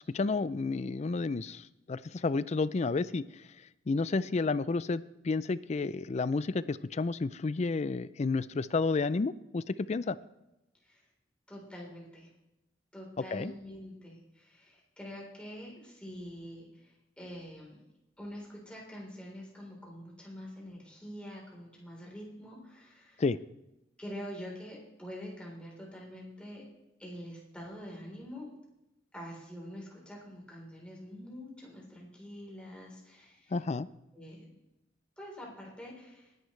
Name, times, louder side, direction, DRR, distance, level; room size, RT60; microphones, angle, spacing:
voice 1, 0.1-3.2 3.9-10.2 13.3-13.5 23.2-23.4 33.5-33.9, left 3 dB, 40° left, 17 dB, 0.4 m, -31 dB
voice 2, 11.5-12.3 12.9-17.8 18.2-23.2 24.0-26.6 27.0-28.5 29.1-33.5 34.1-34.5 35.2-36.3, equal, 5° left, -3 dB, 3.9 m, -45 dB
19.5 x 11.0 x 3.3 m, 0.94 s
head